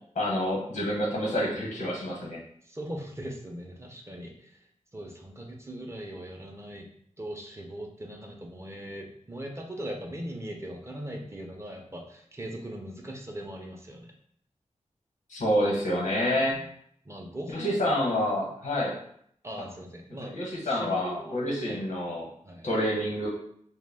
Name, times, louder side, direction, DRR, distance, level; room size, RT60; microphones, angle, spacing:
voice 1, 0.1-2.4 15.3-16.6 17.5-19.0 20.3-22.3 22.6-23.3, equal, 80° left, -3 dB, 0.9 m, -28 dB
voice 2, 2.6-4.6 4.9-6.9 7.2-14.1 15.9-16.0 16.5-16.7 17.0-17.8 19.4-21.8 22.4-22.7, right 1 dB, 20° right, 1 dB, 0.5 m, -40 dB
2.2 x 2.1 x 3.3 m, 0.66 s
cardioid pair, 60°, 12 cm